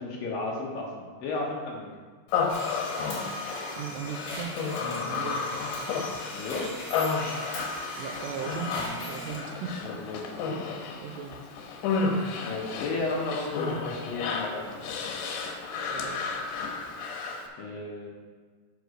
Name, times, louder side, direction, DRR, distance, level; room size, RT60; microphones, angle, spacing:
voice 1, 0.0-1.9 4.9-5.1 6.3-6.7 9.8-10.2 12.4-14.7 17.6-18.1, left 3 dB, 70° left, -2 dB, 2.4 m, -33 dB
Human voice, 2.3-17.5, left 5 dB, 85° left, 3.1 m, -32 dB
sound 1, 2.5-9.4, left 2 dB, 50° left, 3.8 m, -38 dB
voice 2, 3.7-5.4 8.0-9.8 11.0-11.5 15.9-16.2, right 7 dB, 85° right, 5 dB, 2.8 m, -37 dB
7.9 x 5.1 x 6.3 m, 1.5 s
omnidirectional pair, 4.9 m